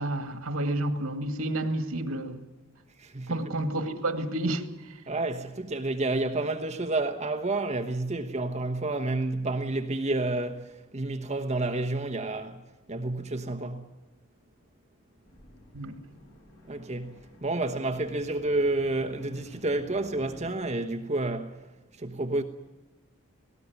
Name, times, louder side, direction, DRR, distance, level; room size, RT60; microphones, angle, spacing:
voice 1, 0.0-2.5 3.3-5.0 15.7-16.0, right 1 dB, 80° right, 2.3 m, -30 dB
voice 2, 3.0-3.4 5.1-13.9 16.7-22.4, right 2 dB, 30° right, 1.1 m, -30 dB
sound 1, 15.3-20.5, left 1 dB, 60° left, 5.3 m, -53 dB
19.0 x 18.0 x 9.5 m
head